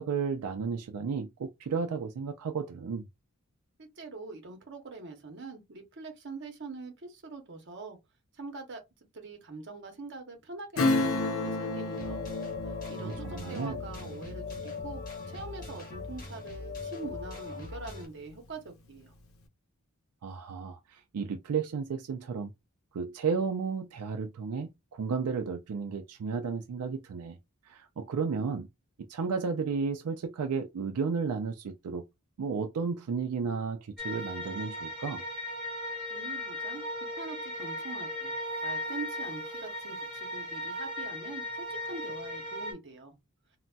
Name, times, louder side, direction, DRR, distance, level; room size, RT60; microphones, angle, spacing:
voice 1, 0.0-3.1 13.0-13.8 20.2-22.5 22.9-27.4 27.7-28.7 29.1-32.0 32.4-35.2, right 5 dB, 85° right, 0.4 m, -33 dB
voice 2, 3.8-8.0 8.3-8.8 9.1-12.2 12.6-19.1 36.1-36.8 37.2-38.3 38.6-41.4 41.7-43.1, right 3 dB, 55° right, 0.8 m, -44 dB
Acoustic guitar / Strum, 10.8-17.0 17.3-17.4, left 2 dB, 65° left, 0.6 m, -33 dB
sound 1, 11.9-18.1, left 4 dB, 40° left, 0.9 m, -40 dB
sound 2, 34.0-42.7, left 1 dB, 5° right, 1.3 m, -37 dB
3.9 x 2.1 x 2.2 m
head